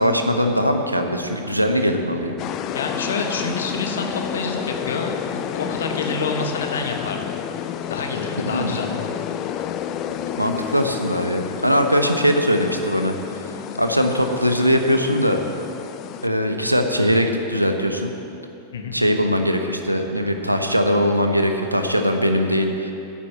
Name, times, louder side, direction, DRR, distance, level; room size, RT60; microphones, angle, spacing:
voice 1, 0.0-2.3 8.4-8.7 10.4-13.1 13.8-15.4 16.2-18.1 18.9-22.9, equal, 90° right, 5 dB, 0.9 m, -20 dB
sound 1, 2.4-16.3, left 9 dB, 35° left, 0.5 m, -30 dB
voice 2, 2.7-7.4 7.9-9.0 18.7-18.9, left 4 dB, 65° left, 3 dB, 1.3 m, -28 dB
10.0 x 7.3 x 8.4 m, 2.8 s
figure-of-eight pair, 90°, 0 cm